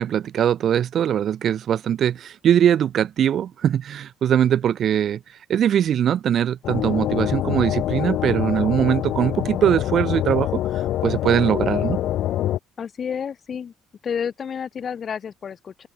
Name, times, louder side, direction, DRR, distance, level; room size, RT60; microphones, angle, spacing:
voice 1, 0.0-5.2 5.5-10.6 11.0-12.0, right 9 dB, 40° right, 6.5 m, -21 dB
sound 1, 6.6-12.6, left 13 dB, 60° left, 3.6 m, -25 dB
voice 2, 12.8-13.7 14.0-15.9, left 7 dB, 30° left, 6.7 m, -30 dB
open air
cardioid pair, 170°, 0 cm